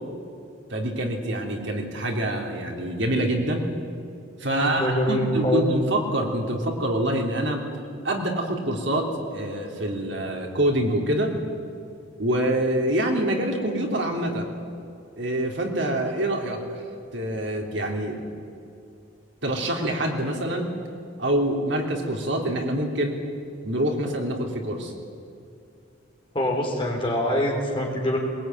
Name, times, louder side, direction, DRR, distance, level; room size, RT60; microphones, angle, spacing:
voice 1, 0.7-3.7 4.4-7.6 8.0-11.4 12.2-14.5 15.2-16.6 17.1-18.2 19.4-20.7 21.2-23.2 23.6-24.9, right 1 dB, 65° right, 2 dB, 3.2 m, -26 dB
voice 2, 4.5-5.7 26.3-28.2, equal, 25° left, 0 dB, 4.2 m, -24 dB
21.5 x 20.5 x 9.4 m, 2.5 s
head